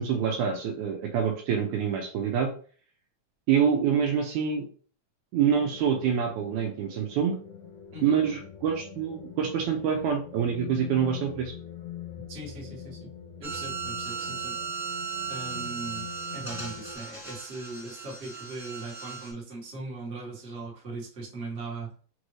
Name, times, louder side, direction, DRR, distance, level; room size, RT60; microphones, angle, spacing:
voice 1, 0.0-2.5 3.5-4.6 5.3-7.4 8.0-11.5, right 7 dB, 80° right, 2 dB, 1.9 m, -26 dB
sound 1, 5.5-16.9, left 9 dB, 80° left, 2.2 m, -44 dB
voice 2, 12.3-13.1 13.4-14.5 15.3-16.1 16.3-21.9, right 3 dB, 35° right, -5 dB, 1.0 m, -39 dB
sound 2, 13.4-19.3, right 6 dB, 5° right, 0.4 m, -36 dB
6.0 x 2.6 x 3.1 m, 0.43 s
omnidirectional pair, 3.8 m